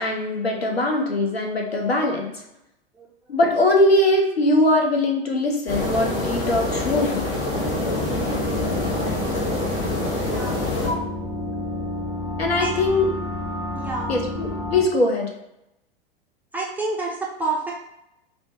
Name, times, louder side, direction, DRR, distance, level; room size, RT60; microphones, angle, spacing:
voice 1, 0.0-2.3 3.3-7.3 10.8-11.0 12.4-13.1 14.1-15.3, left 1 dB, 80° left, 2 dB, 0.8 m, -21 dB
voice 2, 2.9-3.4 10.2-10.6 12.6-12.7 13.7-14.1 16.5-17.7, right 3 dB, 5° right, -4 dB, 0.3 m, -29 dB
sound 1, 5.7-10.9, left 1 dB, 65° left, 1.1 m, -26 dB
sound 2, 7.5-14.8, left 2 dB, 45° left, 1.1 m, -30 dB
5.1 x 2.1 x 2.7 m, 0.86 s
figure-of-eight pair, 90°, 30 cm